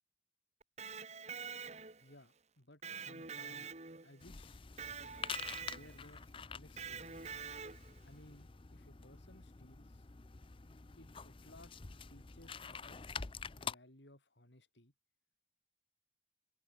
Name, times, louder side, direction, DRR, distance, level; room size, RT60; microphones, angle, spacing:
Electric guitar, 0.6-2.1 2.8-4.2 4.8-6.1 6.8-8.0, right 6 dB, 40° right, 2.2 m, -46 dB
voice 1, 2.0-3.7 4.0-4.6 5.6-6.2 6.5-7.2 8.0-10.1 11.0-11.8 12.1-13.3 13.5-14.9, left 1 dB, 75° left, 6.3 m, -60 dB
sound 1, 4.2-13.7, left 6 dB, 30° left, 0.6 m, -47 dB
open air
head